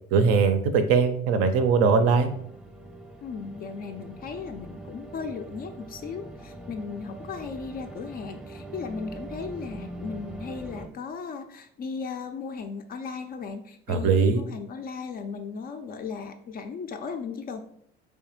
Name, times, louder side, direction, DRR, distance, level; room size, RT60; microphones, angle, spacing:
voice 1, 0.1-2.3 13.9-14.4, right 5 dB, 50° right, 8 dB, 0.5 m, -21 dB
sound 1, 2.0-10.9, right 2 dB, 5° right, 0.7 m, -42 dB
voice 2, 3.2-17.6, left 5 dB, 30° left, 7 dB, 0.4 m, -36 dB
3.2 x 3.1 x 2.9 m, 0.68 s
figure-of-eight pair, 60°, 30 cm